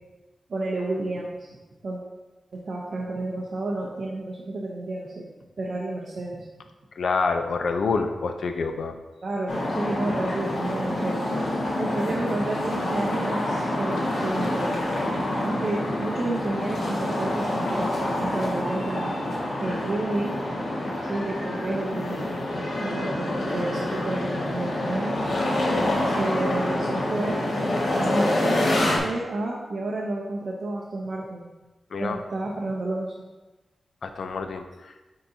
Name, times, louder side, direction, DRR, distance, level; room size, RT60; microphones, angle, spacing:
voice 1, 0.5-1.5 1.8-2.0 2.5-5.2 5.6-6.5 9.2-11.2 11.8-14.7 15.4-19.1 19.6-20.4 21.0-22.3 22.8-25.2 26.0-27.4 27.9-31.4 32.0-33.1, right 2 dB, 50° right, -4 dB, 0.7 m, -30 dB
voice 2, 7.0-8.9 25.6-25.9 31.9-32.2 34.0-34.9, left 4 dB, 70° left, 6 dB, 0.5 m, -27 dB
sound 1, 9.5-29.0, left 1 dB, 85° left, 1.8 m, -27 dB
10.0 x 3.8 x 2.8 m, 1.1 s
wide cardioid pair, 165°, 0 cm